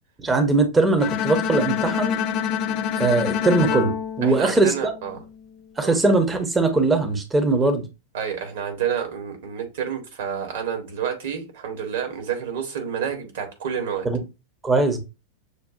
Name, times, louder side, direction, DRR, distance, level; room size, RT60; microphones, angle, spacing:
voice 1, 0.2-2.2 3.0-4.7 5.8-7.8 14.0-14.2 14.6-15.0, right 3 dB, 15° right, 0.8 m, -20 dB
Bowed string instrument, 1.0-5.2, left 8 dB, 40° left, 0.4 m, -26 dB
voice 2, 4.2-5.2 5.8-6.0 8.1-14.1, right 8 dB, 55° right, 1.3 m, -29 dB
6.5 x 2.4 x 2.5 m
figure-of-eight pair, 90°, 0 cm